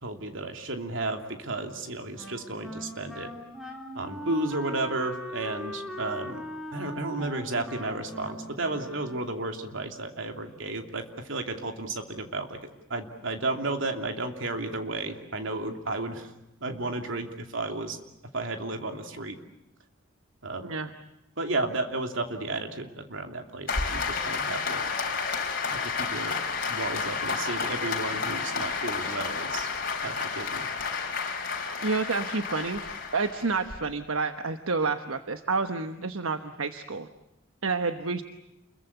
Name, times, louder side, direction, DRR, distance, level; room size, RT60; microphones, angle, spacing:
voice 1, 0.0-3.3 3.9-6.4 6.7-12.6 12.9-16.3 16.6-18.0 18.3-19.4 20.4-20.7 21.4-24.8 25.7-26.4 26.7-29.7 30.0-30.7, right 2 dB, 70° right, 5 dB, 2.9 m, -33 dB
Wind instrument woodwind instrument, 2.1-9.5, equal, ahead, 4.0 m, -40 dB
Applause, 23.7-33.7, left 5 dB, 45° left, 3.9 m, -31 dB
voice 2, 31.8-32.8 33.1-37.1 37.6-38.2, right 4 dB, 85° right, 8 dB, 1.2 m, -29 dB
29.5 x 22.5 x 8.2 m, 0.87 s
head